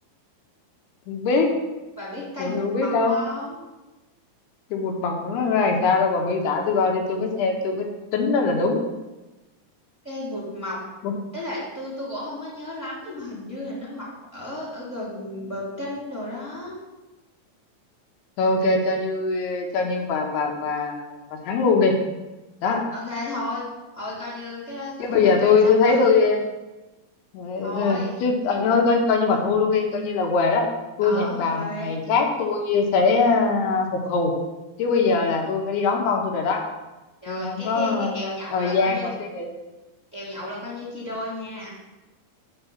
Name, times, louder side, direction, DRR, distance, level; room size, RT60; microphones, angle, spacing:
voice 1, 1.1-1.5 2.4-3.1 4.7-7.9 8.1-8.8 11.0-11.1 18.4-21.1 21.4-21.9 22.6-22.8 25.0-26.4 27.3-30.7 31.0-34.3 34.8-36.6 37.3-39.5, left 4 dB, 80° left, 2 dB, 3.3 m, -22 dB
voice 2, 2.0-3.6 10.0-10.8 11.3-16.7 22.9-23.6 23.9-26.0 27.6-28.2 31.0-31.9 37.2-39.1 40.1-41.7, left 1 dB, ahead, -6 dB, 2.9 m, -33 dB
9.6 x 4.8 x 7.3 m, 1.1 s
omnidirectional pair, 4.6 m